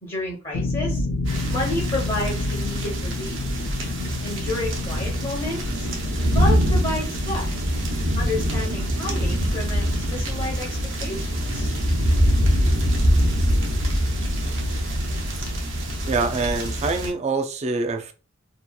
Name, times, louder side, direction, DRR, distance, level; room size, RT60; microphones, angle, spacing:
voice 1, 0.0-1.0 1.5-3.4 4.2-5.9 6.3-7.4 8.1-10.7 11.0-11.7, left 2 dB, 30° left, 0.8 m, -30 dB
sound 1, 0.5-8.2, left 2 dB, 80° left, 0.5 m, -30 dB
sound 2, 1.3-17.1, equal, 70° right, 0.7 m, -24 dB
voice 2, 16.1-18.1, right 3 dB, 35° right, 0.4 m, -25 dB
2.8 x 2.3 x 2.2 m
head